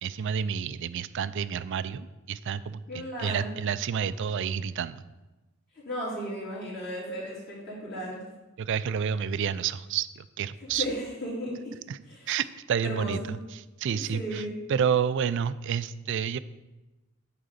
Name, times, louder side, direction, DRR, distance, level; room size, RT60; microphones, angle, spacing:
voice 1, 0.0-5.0 8.6-10.9 11.9-12.0 12.3-13.4 13.8-14.4 14.7-16.4, right 7 dB, 60° right, 15 dB, 0.3 m, -29 dB
voice 2, 2.9-3.5 5.8-8.2 10.7-11.6 12.1-12.4 12.8-13.3 13.9-14.5, equal, 50° left, -7 dB, 3.2 m, -35 dB
8.8 x 3.8 x 6.7 m, 1.1 s
head